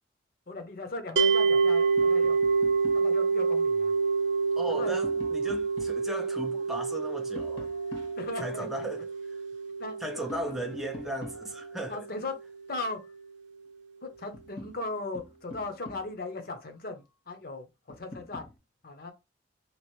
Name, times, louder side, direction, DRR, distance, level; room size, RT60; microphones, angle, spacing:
voice 1, 0.5-2.4 2.9-3.9 4.8-5.0 8.2-8.7 9.8-10.2 10.5-10.8 11.9-12.4 12.7-13.0 14.0-18.5 18.8-19.1, left 2 dB, 50° left, 0.7 m, -38 dB
sound 1, 1.2-12.3, right 4 dB, 65° right, 0.5 m, -28 dB
Tap, 2.0-3.1 4.5-6.1 7.3-8.8 10.3-11.8 13.6-13.7 14.1-16.3 17.9-18.6, left 1 dB, 80° left, 1.7 m, -46 dB
voice 2, 4.6-7.7 8.4-9.4 10.0-12.1, right 1 dB, ahead, 0.4 m, -36 dB
3.0 x 2.5 x 3.0 m
head